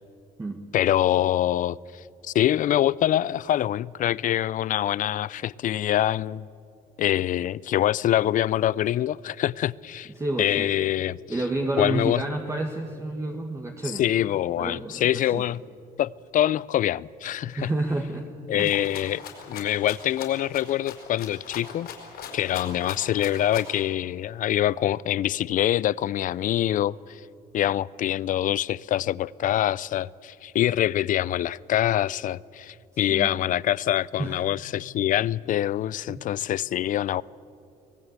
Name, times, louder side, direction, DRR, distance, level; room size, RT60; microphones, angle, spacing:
voice 1, 0.7-1.8 2.2-6.5 7.0-10.1 10.4-11.4 11.8-12.2 13.8-15.6 16.0-17.7 18.5-21.9 22.3-27.2 27.5-37.2, left 12 dB, 50° left, 0.4 m, -25 dB
voice 2, 10.2-10.7 11.3-14.0 14.6-15.4 17.6-18.2 18.5-18.8 33.1-33.3 34.2-34.4 36.1-36.2, right 2 dB, 15° right, 1.6 m, -30 dB
Rattle (instrument), 18.6-23.8, left 7 dB, 70° left, 4.6 m, -40 dB
25.0 x 18.0 x 8.1 m
cardioid pair, 110°, 17 cm